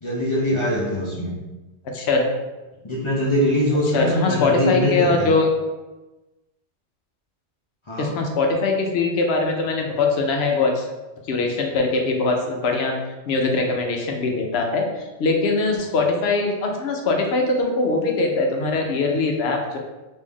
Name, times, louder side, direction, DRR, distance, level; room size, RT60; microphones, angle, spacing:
voice 1, 0.0-1.3 2.8-5.3 7.9-8.1, equal, 30° left, -5 dB, 0.7 m, -22 dB
voice 2, 3.9-5.5 8.0-10.8 11.3-12.9 13.3-14.9 15.2-19.8, left 3 dB, 70° left, 2 dB, 0.8 m, -21 dB
3.2 x 2.6 x 3.5 m, 1.1 s
omnidirectional pair, 1.2 m